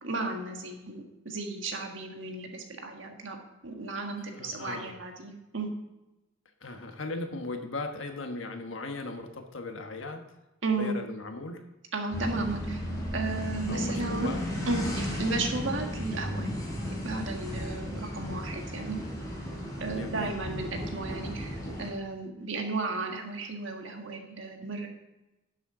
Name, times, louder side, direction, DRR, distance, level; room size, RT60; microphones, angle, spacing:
voice 1, 0.0-3.4 3.6-5.7 10.6-10.9 11.9-12.8 13.1-14.3 14.7-16.5 17.0-19.0 19.8-24.9, right 3 dB, 70° right, 3 dB, 1.7 m, -34 dB
voice 2, 4.3-5.0 6.6-10.2 10.8-11.6 13.7-14.4 19.6-20.4, left 3 dB, 75° left, 5 dB, 1.3 m, -38 dB
sound 1, 12.1-21.9, equal, 20° left, 3.4 m, -34 dB
11.5 x 7.7 x 3.8 m, 1.0 s
head